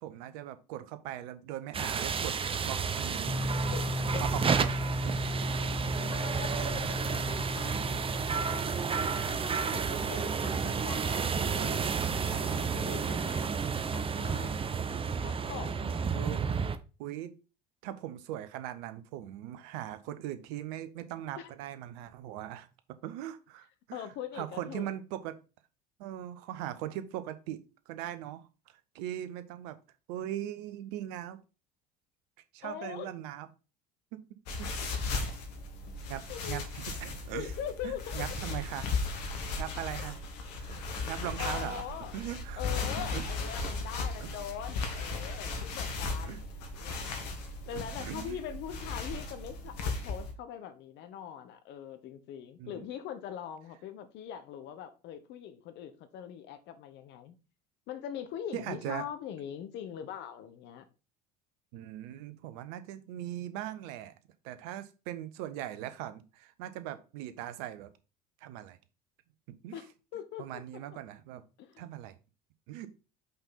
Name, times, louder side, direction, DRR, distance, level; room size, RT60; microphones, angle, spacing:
voice 1, 0.0-2.4 2.6-3.5 4.2-5.2 6.0-6.1 16.1-16.5 17.0-17.3 17.8-22.7 23.0-24.1 24.3-25.4 26.0-29.8 30.1-31.4 32.5-33.5 34.1-34.2 34.6-34.7 36.1-37.5 37.8-39.3 39.6-40.1 40.6-40.8 41.1-41.8 42.1-42.6 43.1-43.2 44.2-44.3 46.2-46.4 47.7-48.4 52.6-52.9 58.5-59.0 61.7-64.1 64.4-67.9 68.4-68.8 69.5-69.7 70.4-71.4 71.8-72.2 72.7-72.9, right 12 dB, 65° right, 1.0 m, -40 dB
sound 1, 1.7-16.8, right 6 dB, 25° right, 0.8 m, -31 dB
sound 2, 3.3-10.1, left 1 dB, ahead, 0.3 m, -36 dB
voice 2, 6.1-8.8 9.1-11.9 12.2-13.5 13.9-14.7 15.2-16.0 21.4-21.5 23.9-24.9 32.6-33.1 36.3-36.6 37.3-38.2 41.4-42.1 42.6-46.5 46.7-47.0 47.7-57.3 57.9-60.9 69.7-70.6 71.6-71.8, left 9 dB, 60° left, 1.3 m, -42 dB
sound 3, 34.5-50.3, left 3 dB, 75° left, 1.6 m, -36 dB
5.7 x 5.3 x 4.2 m
hypercardioid pair, 65°, 21 cm